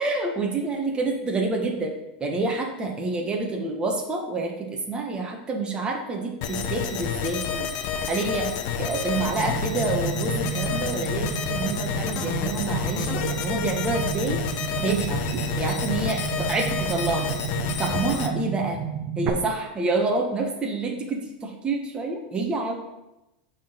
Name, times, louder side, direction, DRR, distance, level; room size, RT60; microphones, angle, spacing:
voice 1, 0.0-1.9 2.2-7.7 8.1-8.5 8.8-14.4 14.8-15.2 15.6-17.4 17.8-18.8 19.1-22.7, right 3 dB, 15° right, 1 dB, 1.3 m, -28 dB
sound 1, 6.4-18.3, left 7 dB, 50° left, 0.8 m, -29 dB
sound 2, 9.3-19.3, right 9 dB, 35° right, 0.8 m, -32 dB
6.2 x 3.9 x 5.9 m, 0.95 s
supercardioid pair, 135°, 5 cm